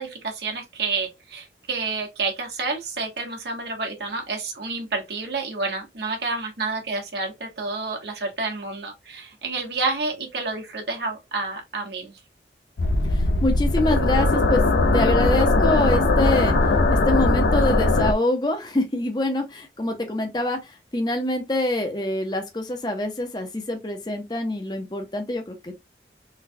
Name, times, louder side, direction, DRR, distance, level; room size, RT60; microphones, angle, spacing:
voice 1, 0.0-12.2, right 3 dB, 75° right, 1.1 m, -29 dB
sound 1, 12.8-18.1, left 2 dB, 75° left, 0.5 m, -19 dB
voice 2, 13.1-14.6 14.9-16.6 16.9-25.7, left 1 dB, 25° left, 0.6 m, -25 dB
3.8 x 2.2 x 2.7 m
head